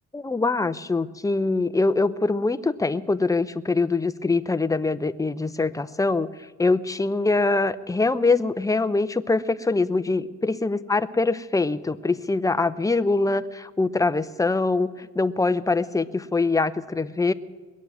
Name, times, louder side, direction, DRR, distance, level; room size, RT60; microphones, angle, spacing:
voice 1, 0.1-6.3 6.6-17.3, left 3 dB, 10° left, 13 dB, 0.7 m, -23 dB
20.5 x 7.5 x 9.4 m, 1.3 s
cardioid pair, 90°, 30 cm